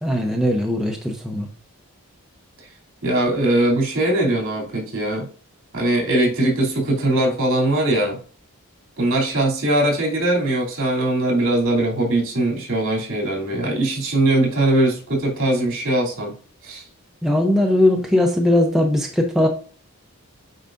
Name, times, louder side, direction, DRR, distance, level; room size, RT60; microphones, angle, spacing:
voice 1, 0.0-1.5 17.2-19.5, left 1 dB, ahead, 0 dB, 0.6 m, -19 dB
voice 2, 3.0-5.3 5.7-8.2 9.0-16.3 16.6-16.8, right 1 dB, 65° right, -2 dB, 3.0 m, -20 dB
9.1 x 4.7 x 2.6 m, 0.41 s
head